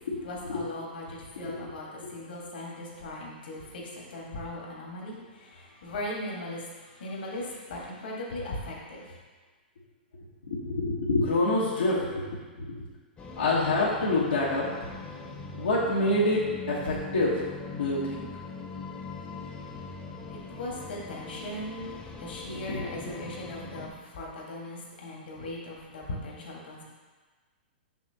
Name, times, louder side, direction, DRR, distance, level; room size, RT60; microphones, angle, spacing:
voice 1, 0.2-9.2 20.3-26.8, left 1 dB, 70° left, -2 dB, 1.6 m, -39 dB
voice 2, 10.4-12.7 13.4-14.7 15.5-18.3 22.5-22.9, left 2 dB, 90° left, -8 dB, 1.2 m, -27 dB
sound 1, 13.2-23.9, left 4 dB, 20° left, 0.8 m, -41 dB
6.1 x 5.8 x 2.9 m, 1.4 s
hypercardioid pair, 125°, 5 cm